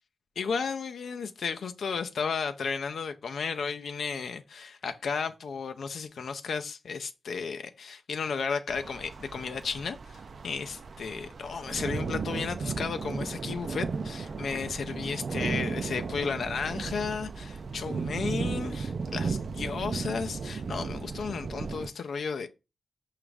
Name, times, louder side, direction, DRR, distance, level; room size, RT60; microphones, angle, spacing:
voice 1, 0.4-22.5, left 5 dB, 75° left, 0.3 m, -34 dB
sound 1, 8.7-21.9, right 4 dB, 65° right, 0.3 m, -35 dB
5.0 x 2.4 x 3.2 m
supercardioid pair, 40°, 0 cm